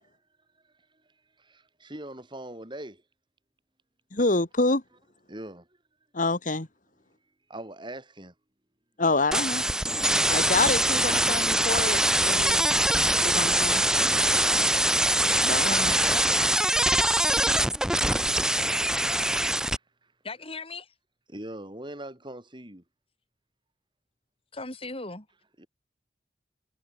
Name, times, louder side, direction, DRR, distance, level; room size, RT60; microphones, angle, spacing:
voice 1, 0.5-3.0 5.3-5.8 7.5-8.3 21.3-22.8 25.6-25.7, right 1 dB, 25° right, 7.6 m, -45 dB
voice 2, 4.1-4.8 6.1-6.7 9.0-9.6 10.3-12.8 13.2-13.8 15.4-15.9, left 2 dB, 50° left, 2.0 m, -27 dB
sound 1, 9.3-19.8, right 1 dB, 5° right, 0.9 m, -23 dB
voice 3, 15.7-16.6 20.2-20.9 24.5-25.3, left 3 dB, 35° left, 6.8 m, -38 dB
head